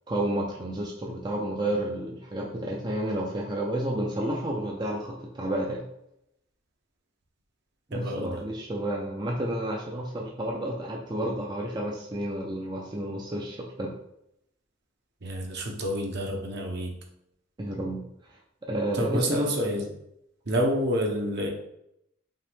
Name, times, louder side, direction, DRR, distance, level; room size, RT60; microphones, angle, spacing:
voice 1, 0.1-5.8 7.9-13.9 17.6-18.3 18.7-19.6, right 1 dB, 20° right, -1 dB, 0.5 m, -31 dB
voice 2, 7.9-8.4 15.2-16.9 18.9-19.9 20.5-21.5, equal, 55° right, 0 dB, 0.9 m, -28 dB
5.4 x 2.6 x 3.5 m, 0.78 s
head